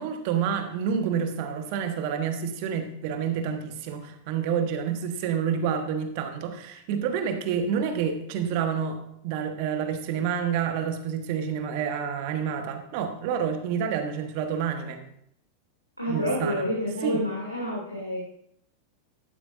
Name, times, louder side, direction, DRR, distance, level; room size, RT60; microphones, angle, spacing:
voice 1, 0.0-15.0 16.1-16.7 17.0-17.2, right 7 dB, 45° right, 6 dB, 1.4 m, -28 dB
voice 2, 16.0-18.2, equal, 90° left, -5 dB, 2.9 m, -28 dB
13.5 x 12.0 x 2.7 m, 0.73 s
figure-of-eight pair, 90°, 0 cm